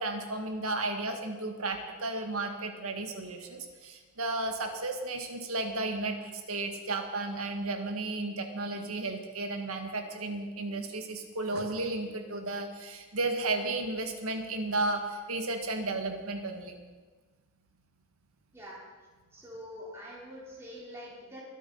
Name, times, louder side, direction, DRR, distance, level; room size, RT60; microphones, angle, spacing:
voice 1, 0.0-16.7, right 2 dB, 70° right, 5 dB, 1.9 m, -33 dB
voice 2, 19.3-21.4, equal, 10° right, -6 dB, 3.7 m, -45 dB
23.5 x 8.6 x 5.6 m, 1.4 s
head